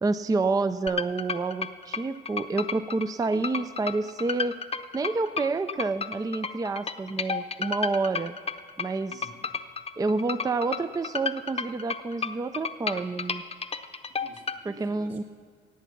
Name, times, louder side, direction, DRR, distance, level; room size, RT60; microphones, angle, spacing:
voice 1, 0.0-4.6 4.9-8.4 8.8-9.3 10.0-13.4 14.7-15.2, right 3 dB, 20° right, 12 dB, 0.4 m, -28 dB
sound 1, 0.9-14.6, left 5 dB, 30° left, 0.8 m, -32 dB
voice 2, 9.1-9.4 14.1-15.2, right 2 dB, 75° right, 1 dB, 2.6 m, -51 dB
17.5 x 8.1 x 6.0 m, 2.1 s
cardioid pair, 90°, 20 cm